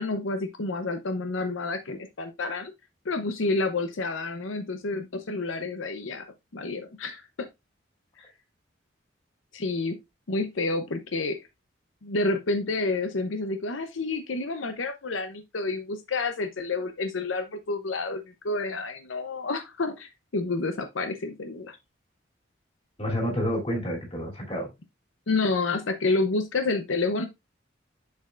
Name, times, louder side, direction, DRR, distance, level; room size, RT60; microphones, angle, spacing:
voice 1, 0.0-2.7 3.0-6.3 6.5-7.5 9.5-9.9 10.3-11.4 12.0-21.8 25.3-27.3, left 3 dB, 85° left, 0.7 m, -29 dB
voice 2, 23.0-24.7, equal, 30° left, 2.8 m, -29 dB
7.0 x 6.6 x 2.4 m
head